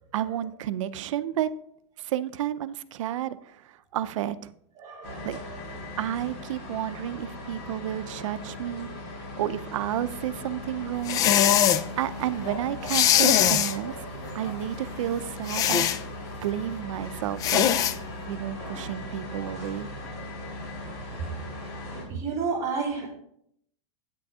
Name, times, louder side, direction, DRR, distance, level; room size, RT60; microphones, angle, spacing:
voice 1, 0.1-1.5 2.0-4.5 5.2-5.4 6.0-8.9 9.4-11.2 12.0-13.9 14.3-15.9 16.4-17.7 18.3-19.9, right 12 dB, 75° right, 14 dB, 0.6 m, -31 dB
voice 2, 4.8-5.5 21.9-23.1, right 5 dB, 20° right, -4 dB, 3.2 m, -31 dB
sound 1, 5.0-22.0, left 1 dB, 50° left, 4.3 m, -38 dB
sound 2, 11.1-11.8 12.9-13.7 15.5-16.0 17.4-17.9, left 10 dB, 20° left, 0.3 m, -21 dB
9.5 x 7.6 x 3.6 m, 0.71 s
supercardioid pair, 160°, 16 cm